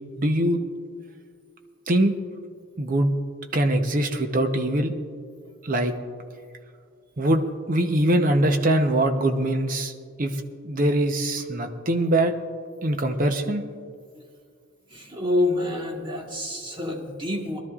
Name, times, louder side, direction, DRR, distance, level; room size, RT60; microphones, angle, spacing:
voice 1, 0.2-0.6 1.9-2.1 2.8-3.1 3.5-4.9 5.6-5.9 7.2-9.9 10.2-10.3 10.6-12.3 12.8-13.6, right 1 dB, 40° right, 6 dB, 0.8 m, -22 dB
voice 2, 14.9-17.6, left 2 dB, 25° right, 0 dB, 1.4 m, -27 dB
21.0 x 12.5 x 2.4 m, 2.1 s
head